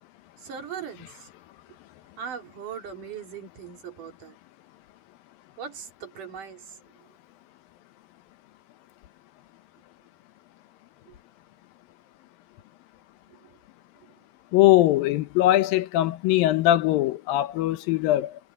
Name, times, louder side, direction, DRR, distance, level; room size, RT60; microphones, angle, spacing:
voice 1, 0.4-1.3 2.2-4.4 5.6-6.6 11.1-11.2 13.4-13.5, right 7 dB, 65° right, 5.1 m, -39 dB
voice 2, 14.5-18.4, left 14 dB, 80° left, 2.7 m, -21 dB
omnidirectional pair, 4.1 m